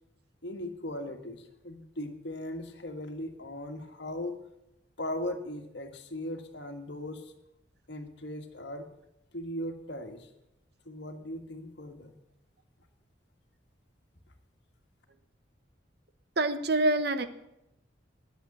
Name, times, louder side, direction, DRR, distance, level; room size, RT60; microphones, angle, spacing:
voice 1, 0.4-4.4 5.0-7.3 7.9-8.9 9.3-10.3 10.9-12.1, left 1 dB, 65° left, 5 dB, 1.8 m, -38 dB
voice 2, 16.4-17.2, right 2 dB, 55° right, 9 dB, 1.1 m, -26 dB
11.5 x 7.5 x 9.8 m, 0.84 s
head